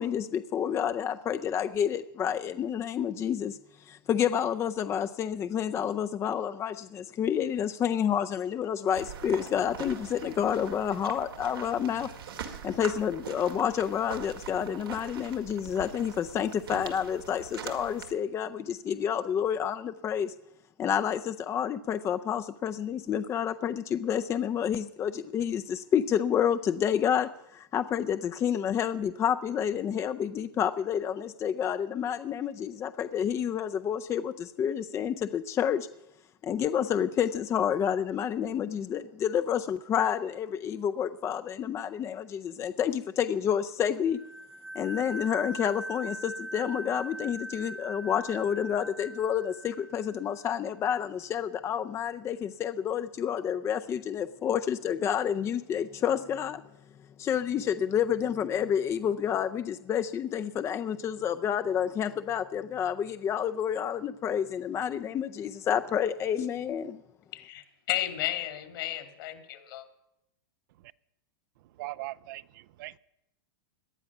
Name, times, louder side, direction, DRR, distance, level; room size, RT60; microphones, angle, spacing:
voice 1, 0.0-12.1 12.4-20.3 20.8-35.9 36.4-44.2 44.7-56.6 57.2-67.0, left 8 dB, 25° left, 9 dB, 0.5 m, -29 dB
sound 1, 8.9-18.1, right 7 dB, 90° right, 2.1 m, -43 dB
sound 2, 44.1-50.6, right 1 dB, 5° right, 1.1 m, -41 dB
voice 2, 67.3-69.8, left 13 dB, 70° left, 8 dB, 2.4 m, -33 dB
voice 3, 71.8-73.0, right 18 dB, 60° right, 17 dB, 0.5 m, -40 dB
18.0 x 11.0 x 6.0 m, 0.82 s
hypercardioid pair, 125°, 12 cm